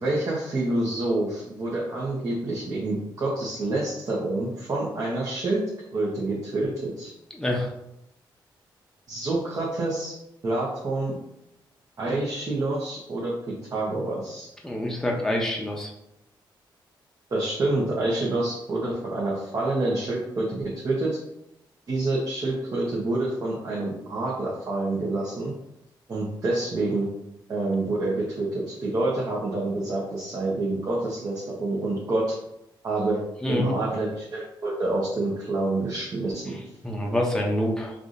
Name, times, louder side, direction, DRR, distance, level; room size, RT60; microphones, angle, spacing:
voice 1, 0.0-5.6 5.9-7.1 9.1-10.1 10.4-11.1 12.0-14.5 17.3-21.2 21.9-25.5 26.1-27.1 27.5-32.4 32.8-33.2 33.5-36.6, right 2 dB, 45° right, -5 dB, 0.9 m, -27 dB
voice 2, 7.3-7.7 14.6-15.9 33.4-33.8 36.8-37.9, left 1 dB, 5° left, 0 dB, 0.7 m, -26 dB
4.7 x 2.5 x 2.6 m, 0.82 s
cardioid pair, 110°, 8 cm